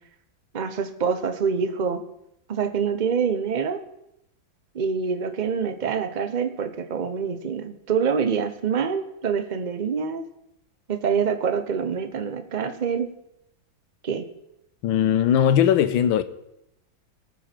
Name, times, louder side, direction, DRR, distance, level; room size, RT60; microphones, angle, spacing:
voice 1, 0.5-2.0 2.5-3.8 4.7-10.2 10.9-13.1 14.0-14.3, right 6 dB, 45° right, 0.6 m, -26 dB
voice 2, 14.8-16.2, left 9 dB, 90° left, 1.5 m, -19 dB
18.5 x 7.2 x 4.5 m
omnidirectional pair, 2.1 m